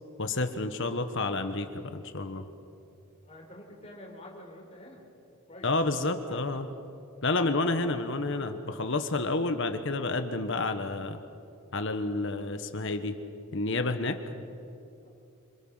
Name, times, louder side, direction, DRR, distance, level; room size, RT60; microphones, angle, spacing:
voice 1, 0.2-2.4 5.6-6.7 7.2-11.2 11.7-13.2 13.5-14.2, left 2 dB, 55° left, 8 dB, 1.4 m, -30 dB
voice 2, 3.3-5.0 5.5-6.4 15.0-15.1, left 1 dB, 25° left, -1 dB, 4.8 m, -48 dB
28.0 x 26.5 x 5.7 m, 2.6 s
head